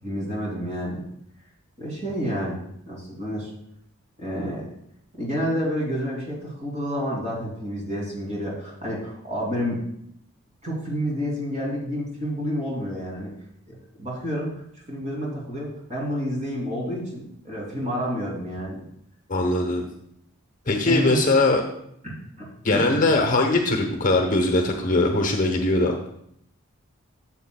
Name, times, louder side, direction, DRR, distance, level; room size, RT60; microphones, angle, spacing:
voice 1, 0.0-1.0 1.8-3.5 4.2-4.7 5.1-9.8 10.6-13.3 13.7-14.5 14.9-18.8 20.8-21.2 22.0-23.0, equal, 30° right, -4 dB, 2.8 m, -29 dB
voice 2, 19.3-19.8 20.7-21.6 22.6-26.0, left 2 dB, 40° left, 3 dB, 0.8 m, -21 dB
12.5 x 7.3 x 2.3 m, 0.73 s
head